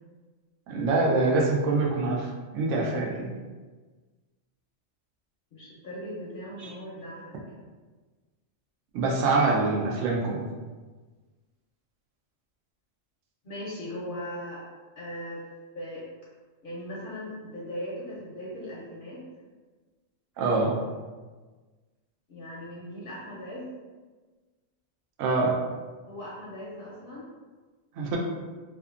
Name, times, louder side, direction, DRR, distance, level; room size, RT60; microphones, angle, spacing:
voice 1, 0.7-3.3 6.6-6.7 8.9-10.4 20.4-20.8 25.2-25.6 28.0-28.2, right 3 dB, 90° right, -2 dB, 0.9 m, -25 dB
voice 2, 5.5-7.3 13.4-14.6 15.0-15.4 15.7-16.0 16.6-19.2 22.3-23.7 26.1-27.3, equal, 60° left, -6 dB, 0.6 m, -38 dB
2.6 x 2.3 x 2.4 m, 1.3 s
omnidirectional pair, 1.2 m